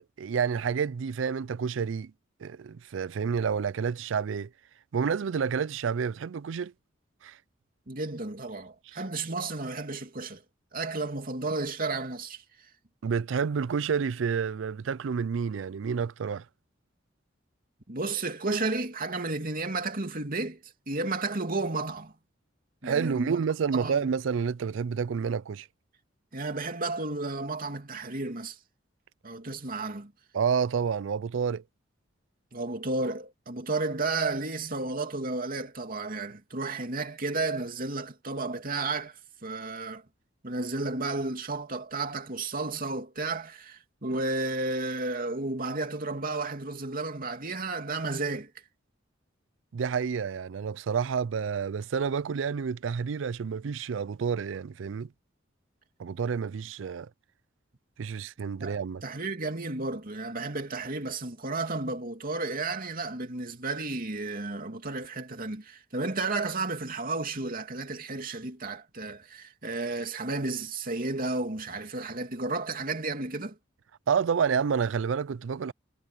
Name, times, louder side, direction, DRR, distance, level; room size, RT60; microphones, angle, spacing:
voice 1, 0.2-2.1 2.4-4.5 4.9-6.7 7.2-7.4 13.0-16.4 22.8-25.7 30.3-31.6 49.7-55.1 56.0-57.1 58.0-59.0 74.1-75.7, right 6 dB, 80° right, 0.4 m, -29 dB
voice 2, 7.9-10.4 10.7-12.4 17.9-22.1 22.8-23.4 23.7-24.1 26.3-28.6 29.2-30.1 32.5-39.2 39.4-40.0 40.4-48.5 58.6-73.6, right 3 dB, 50° right, 2.8 m, -32 dB
head